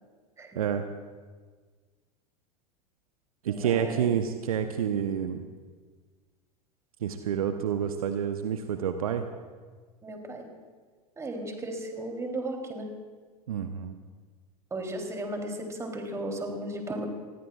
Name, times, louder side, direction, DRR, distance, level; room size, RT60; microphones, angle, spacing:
voice 1, 0.5-0.9 3.4-5.4 7.0-9.2 13.5-14.0, right 8 dB, 65° right, 8 dB, 1.0 m, -28 dB
voice 2, 3.5-4.1 10.0-10.5 11.2-12.9 14.7-17.1, right 1 dB, 15° right, 3 dB, 3.4 m, -35 dB
27.5 x 20.5 x 2.5 m, 1.5 s
figure-of-eight pair, 85°, 20 cm